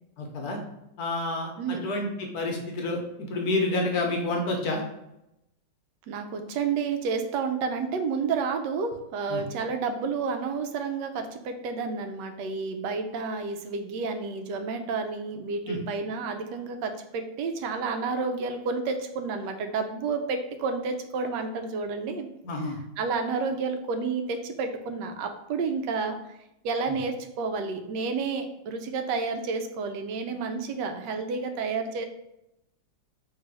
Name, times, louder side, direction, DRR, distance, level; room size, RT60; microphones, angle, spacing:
voice 1, 0.2-0.6 1.0-4.8 9.3-9.4 15.7-15.8 22.4-22.8 26.9-27.0, left 2 dB, 65° left, 1 dB, 1.1 m, -29 dB
voice 2, 1.6-2.0 6.1-22.3 22.7-26.2 26.6-32.1, right 4 dB, 75° right, 6 dB, 1.1 m, -30 dB
3.3 x 2.9 x 4.6 m, 0.86 s
omnidirectional pair, 2.0 m